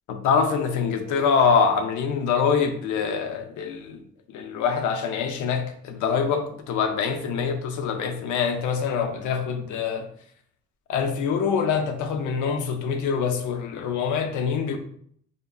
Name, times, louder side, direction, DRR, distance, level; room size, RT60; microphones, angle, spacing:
voice 1, 0.1-4.0 4.3-10.1 10.9-14.8, left 6 dB, 80° left, 0.5 m, -25 dB
3.8 x 2.0 x 2.2 m
cardioid pair, 90°, 30 cm